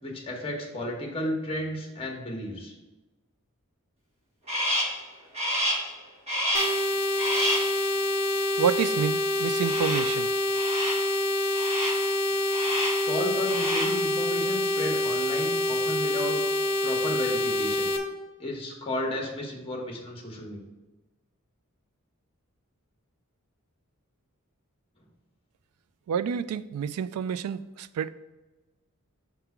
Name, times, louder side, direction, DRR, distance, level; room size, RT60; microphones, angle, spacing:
voice 1, 0.0-2.7 12.3-12.5 12.9-16.4 16.8-17.9 18.4-20.6, left 1 dB, 25° left, 0 dB, 1.3 m, -33 dB
Crow, 4.5-5.0 5.3-5.9 6.3-6.8 7.2-7.7 9.6-10.2 10.5-11.1 11.5-12.1 12.5-13.1 13.4-14.0, equal, 30° right, 1.6 m, -29 dB
sound 1, 6.5-18.0, left 1 dB, 50° left, 1.0 m, -26 dB
voice 2, 8.6-10.3 26.1-28.1, right 7 dB, 85° right, 16 dB, 0.3 m, -28 dB
5.8 x 3.7 x 5.8 m, 1.1 s
head